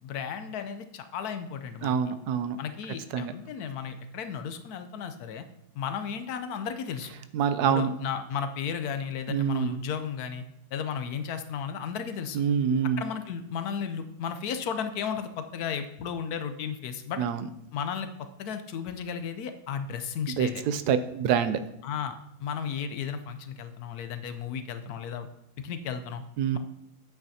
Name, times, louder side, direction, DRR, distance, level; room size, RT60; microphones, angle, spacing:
voice 1, 0.0-2.0 2.6-5.4 5.7-7.1 7.6-10.4 10.7-12.4 13.0-17.2 17.7-18.1 18.4-20.6 21.8-25.3 25.6-26.2, left 7 dB, 75° left, 9 dB, 1.1 m, -34 dB
voice 2, 1.8-2.6 3.1-3.3 7.3-7.9 9.3-9.7 12.3-13.0 17.2-17.4 20.4-21.6 26.4-26.6, right 8 dB, 80° right, 11 dB, 1.1 m, -26 dB
8.9 x 8.1 x 2.8 m, 0.80 s
omnidirectional pair, 1.7 m